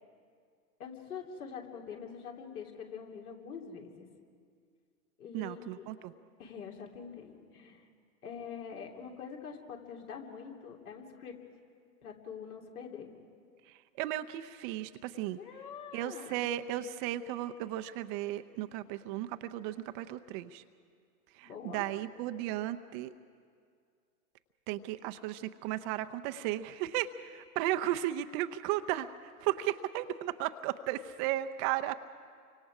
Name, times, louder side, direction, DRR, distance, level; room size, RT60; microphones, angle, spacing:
voice 1, 0.8-4.0 5.2-5.9 6.4-7.8 8.2-11.3 12.0-13.1 15.4-16.5 21.4-21.8, left 6 dB, 70° left, 1 dB, 3.3 m, -45 dB
voice 2, 5.3-6.1 13.6-15.4 15.9-20.6 21.3-23.1 24.7-32.0, right 13 dB, 35° right, 9 dB, 0.6 m, -35 dB
30.0 x 25.0 x 4.9 m, 2.2 s
hypercardioid pair, 110°, 46 cm